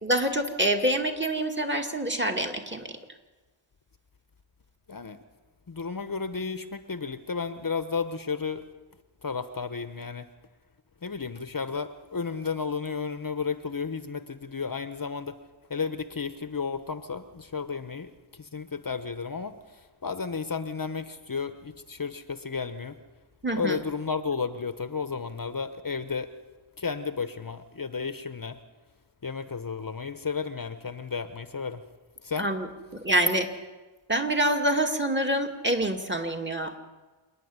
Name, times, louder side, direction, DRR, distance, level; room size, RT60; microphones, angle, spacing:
voice 1, 0.0-2.9 23.4-23.8 32.4-32.7 33.0-33.5 34.1-36.8, right 1 dB, 20° right, 3 dB, 2.2 m, -26 dB
voice 2, 4.9-5.2 5.7-8.6 9.2-10.3 11.0-15.4 15.7-23.0 23.5-26.3 26.8-28.6 29.2-31.8 32.2-32.5, left 5 dB, 45° left, 10 dB, 1.0 m, -33 dB
27.0 x 9.8 x 9.6 m, 1.2 s
wide cardioid pair, 75°, 49 cm